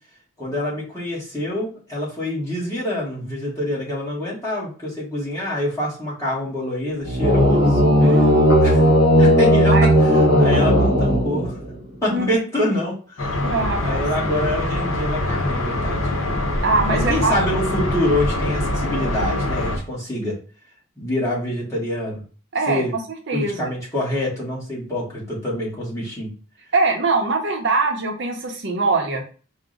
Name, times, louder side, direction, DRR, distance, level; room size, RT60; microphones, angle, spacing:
voice 1, 0.4-7.9 8.6-8.8 9.2-11.6 12.0-13.4 13.8-16.3 16.9-20.4 21.0-22.2 22.7-22.9 23.3-26.3, left 1 dB, 15° left, -6 dB, 1.3 m, -26 dB
sound 1, 7.0-11.8, equal, 50° left, 1.3 m, -15 dB
voice 2, 8.0-8.9 9.7-10.0 12.1-12.2 13.4-14.3 16.6-17.4 22.5-23.0 23.3-23.7 26.7-29.2, right 3 dB, 55° right, 2 dB, 0.7 m, -23 dB
sound 2, 13.2-19.8, left 1 dB, 65° left, 0.7 m, -24 dB
4.7 x 2.1 x 3.7 m, 0.38 s
head